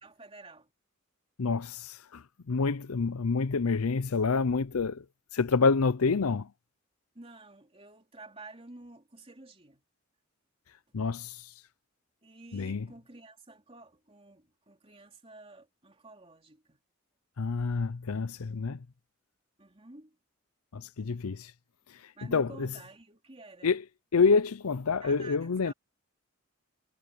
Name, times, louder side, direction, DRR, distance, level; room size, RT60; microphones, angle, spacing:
voice 1, 0.0-0.7 7.1-9.8 12.2-16.8 17.7-17.8 19.6-20.2 22.1-23.7 25.0-25.7, right 2 dB, 25° right, 3.3 m, -51 dB
voice 2, 1.4-5.0 5.3-6.5 10.9-11.5 12.5-12.9 17.4-18.8 20.7-21.5 22.3-22.7 23.6-23.8 24.1-25.7, left 4 dB, 85° left, 0.6 m, -27 dB
head